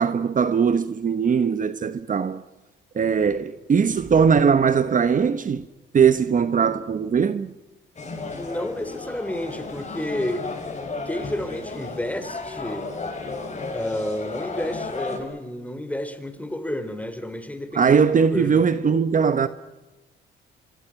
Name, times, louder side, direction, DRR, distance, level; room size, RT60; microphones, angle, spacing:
voice 1, 0.0-2.4 2.9-5.6 5.9-7.5 17.7-19.5, right 6 dB, 40° right, 1.0 m, -20 dB
sound 1, 7.9-15.2, left 3 dB, 35° left, 7.1 m, -34 dB
voice 2, 8.2-10.5 11.1-12.9 13.7-18.7, left 1 dB, 5° left, 3.5 m, -31 dB
26.5 x 24.5 x 5.9 m
cardioid pair, 90°, 20 cm